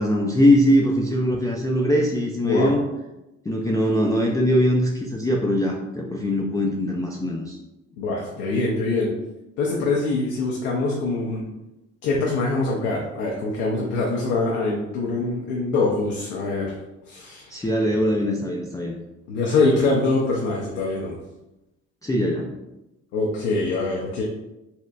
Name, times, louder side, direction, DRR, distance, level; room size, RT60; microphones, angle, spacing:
voice 1, 0.0-2.8 3.5-7.6 17.5-19.0 22.0-22.5, equal, 10° left, -1 dB, 0.4 m, -21 dB
voice 2, 8.0-9.1 9.6-11.4 12.0-16.7 17.1-17.7 19.3-21.1 23.1-24.2, left 3 dB, 85° left, -3 dB, 0.6 m, -24 dB
4.2 x 2.1 x 2.4 m, 0.96 s
supercardioid pair, 65°, 30 cm